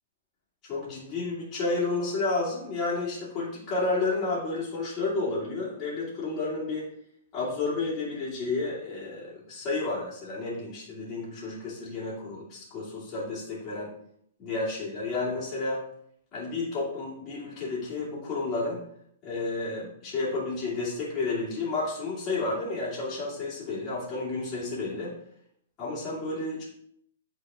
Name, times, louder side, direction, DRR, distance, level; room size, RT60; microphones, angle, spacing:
voice 1, 0.6-6.8 7.3-13.9 14.4-15.8 16.3-18.8 19.2-25.1 25.8-26.6, left 3 dB, 25° left, -7 dB, 2.4 m, -31 dB
8.3 x 4.1 x 3.6 m, 0.69 s
hypercardioid pair, 155°, 0 cm